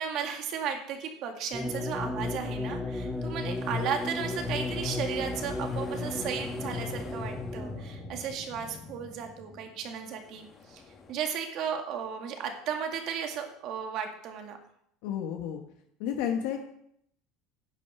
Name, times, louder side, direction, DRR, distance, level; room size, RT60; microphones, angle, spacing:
voice 1, 0.0-10.8 11.1-14.6, right 7 dB, 55° right, 4 dB, 2.1 m, -35 dB
sound 1, 1.5-7.8, left 3 dB, 5° left, 2.4 m, -34 dB
sound 2, 3.2-11.1, left 3 dB, 30° left, 1.7 m, -44 dB
voice 2, 15.0-15.6 16.0-16.7, left 9 dB, 75° left, 3 dB, 1.2 m, -31 dB
10.5 x 7.7 x 5.7 m, 0.71 s
supercardioid pair, 130°, 0 cm